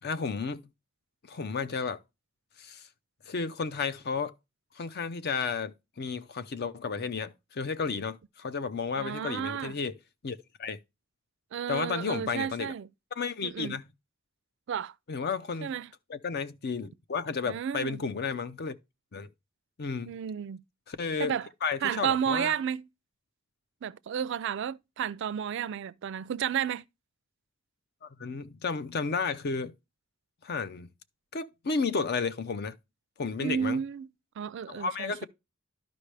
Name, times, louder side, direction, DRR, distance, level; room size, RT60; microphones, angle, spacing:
voice 1, 0.0-0.6 1.3-2.0 2.6-2.9 3.3-4.3 4.8-9.9 10.2-10.8 11.7-12.7 13.2-13.8 15.1-15.7 16.1-18.8 19.1-19.3 19.8-20.2 20.9-21.3 21.6-22.5 28.0-29.7 30.4-30.9 31.3-32.7 33.2-33.8 34.7-35.3, left 5 dB, 50° left, 0.5 m, -32 dB
voice 2, 9.0-9.7 11.5-12.9 13.4-13.8 14.7-14.9 15.6-15.9 17.4-18.0 20.1-20.6 21.2-21.5 21.8-22.9 23.8-26.8 33.4-34.1 34.4-35.2, right 8 dB, 60° right, 0.3 m, -32 dB
11.5 x 5.2 x 3.3 m
head